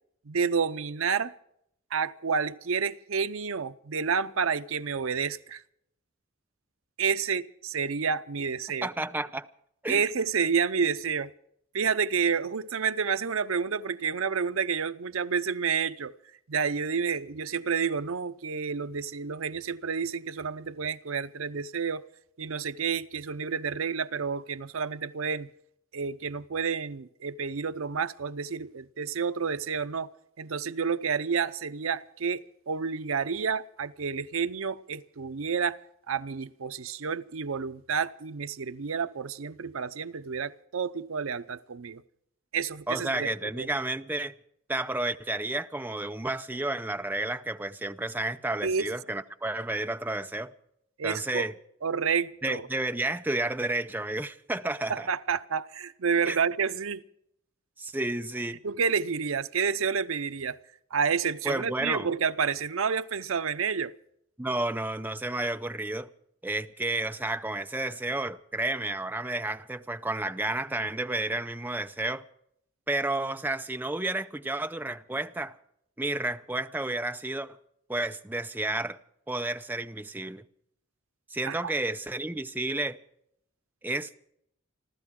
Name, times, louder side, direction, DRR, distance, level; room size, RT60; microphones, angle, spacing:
voice 1, 0.3-1.3 1.9-5.6 7.0-8.9 9.9-11.3 11.7-16.1 16.5-22.0 22.4-25.5 25.9-30.1 30.4-35.8 36.1-42.0 42.5-43.7 48.6-48.9 51.0-51.5 51.8-52.6 54.9-57.0 58.6-60.6 60.9-63.9 81.5-81.7, right 6 dB, 80° right, 0.7 m, -29 dB
voice 2, 8.8-9.5 9.8-10.0 42.9-44.3 44.7-50.5 51.0-51.5 52.4-55.1 56.2-56.4 57.8-58.6 61.4-62.1 64.4-66.1 66.4-72.2 72.9-75.6 76.0-77.6 77.9-79.0 79.3-80.4 81.3-83.0 83.8-84.1, right 2 dB, 10° right, 0.6 m, -31 dB
29.5 x 12.5 x 3.7 m
head